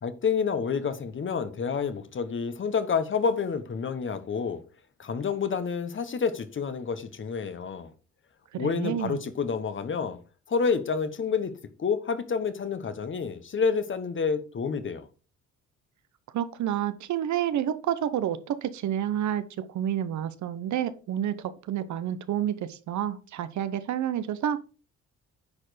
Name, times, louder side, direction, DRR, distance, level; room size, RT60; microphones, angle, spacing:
voice 1, 0.0-4.6 5.0-7.9 8.5-10.2 10.5-11.5 11.8-15.1, left 5 dB, 40° left, 1.1 m, -29 dB
voice 2, 8.5-9.3 16.3-24.6, right 10 dB, 70° right, 0.9 m, -29 dB
9.8 x 4.4 x 5.0 m
cardioid pair, 90°, 30 cm